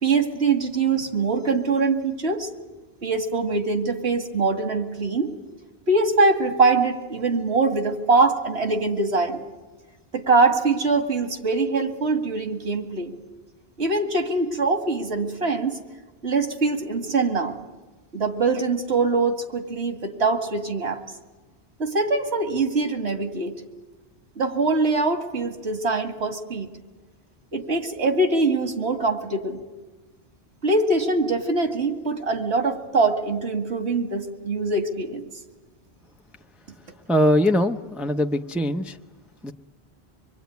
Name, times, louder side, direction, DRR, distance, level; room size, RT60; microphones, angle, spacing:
voice 1, 0.0-2.5 3.0-5.3 5.9-9.4 10.1-13.1 13.8-15.8 16.2-17.5 18.1-21.0 21.8-23.6 24.4-26.7 27.5-29.6 30.6-35.2, right 3 dB, 80° right, 5 dB, 2.4 m, -23 dB
voice 2, 37.1-39.0 39.4-39.5, left 1 dB, ahead, 5 dB, 0.7 m, -21 dB
25.5 x 23.0 x 9.4 m, 1.2 s
omnidirectional pair, 1.1 m